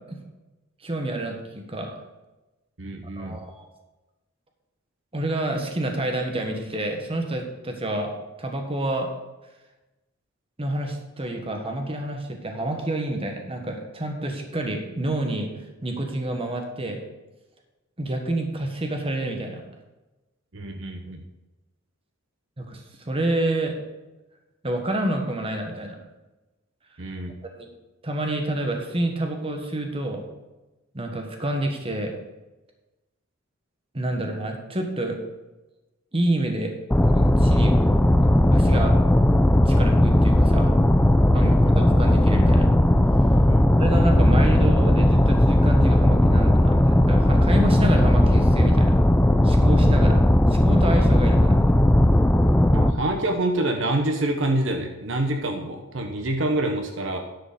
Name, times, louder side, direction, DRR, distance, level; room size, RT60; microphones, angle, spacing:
voice 1, 0.8-1.9 3.2-3.7 5.1-8.1 8.4-9.1 10.6-15.5 15.8-17.0 18.0-19.6 22.6-23.7 24.6-26.0 27.4-27.7 28.0-30.2 30.9-32.1 33.9-35.2 36.1-36.7 37.1-37.8 38.5-38.9 39.6-40.7 41.3-42.7 43.8-49.1 49.4-50.2 50.5-51.8, right 1 dB, 30° right, 3 dB, 1.4 m, -28 dB
voice 2, 2.8-3.4 20.5-21.2 27.0-27.3 41.3-41.8 43.4-43.7 52.7-57.2, right 1 dB, 65° right, 4 dB, 1.1 m, -27 dB
sound 1, 36.9-52.9, left 1 dB, 10° left, 0.5 m, -17 dB
10.5 x 5.2 x 6.7 m, 1.1 s
head